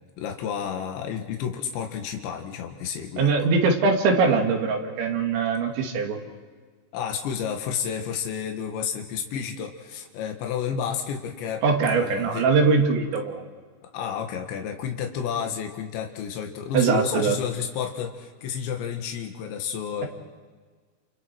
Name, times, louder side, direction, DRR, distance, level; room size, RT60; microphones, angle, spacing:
voice 1, 0.2-3.3 6.9-11.6 11.9-12.5 13.8-20.1, left 7 dB, 85° left, 3 dB, 3.9 m, -31 dB
voice 2, 3.2-6.2 11.6-13.5 16.7-17.4, right 4 dB, 90° right, 2 dB, 4.7 m, -22 dB
29.5 x 29.0 x 4.6 m, 1.5 s
omnidirectional pair, 5.1 m